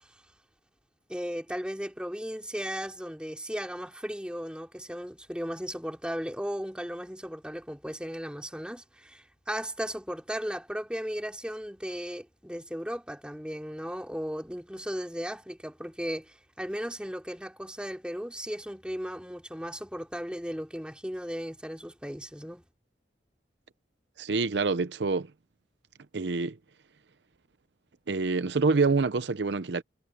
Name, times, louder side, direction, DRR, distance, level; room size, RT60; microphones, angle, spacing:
voice 1, 1.1-22.6, equal, 5° right, 3.2 m, -36 dB
voice 2, 24.2-25.3 26.1-26.6 28.1-29.8, right 4 dB, 80° right, 0.7 m, -26 dB
head